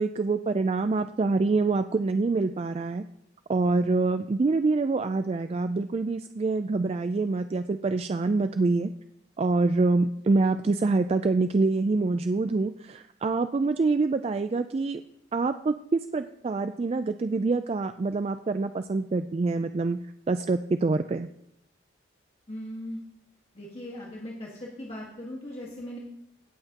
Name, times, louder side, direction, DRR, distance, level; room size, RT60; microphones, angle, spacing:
voice 1, 0.0-3.0 3.5-8.9 9.4-15.0 15.3-20.0 20.3-21.3, right 3 dB, 30° right, 10 dB, 0.3 m, -26 dB
voice 2, 22.5-23.0 23.5-26.0, equal, 30° left, -3 dB, 1.6 m, -39 dB
17.5 x 7.9 x 2.9 m, 0.75 s
head